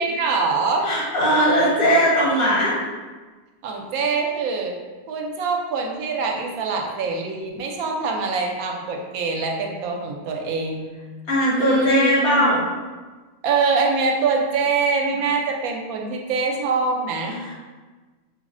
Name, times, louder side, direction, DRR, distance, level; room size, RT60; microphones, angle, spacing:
voice 1, 0.0-0.9 1.2-1.5 3.6-4.8 5.1-10.9 11.6-12.5 13.4-17.4, right 4 dB, 75° right, 1 dB, 1.0 m, -24 dB
voice 2, 0.8-2.7 11.3-12.6 17.4-17.6, equal, 70° left, -7 dB, 1.7 m, -19 dB
5.1 x 2.0 x 2.5 m, 1.3 s
omnidirectional pair, 1.5 m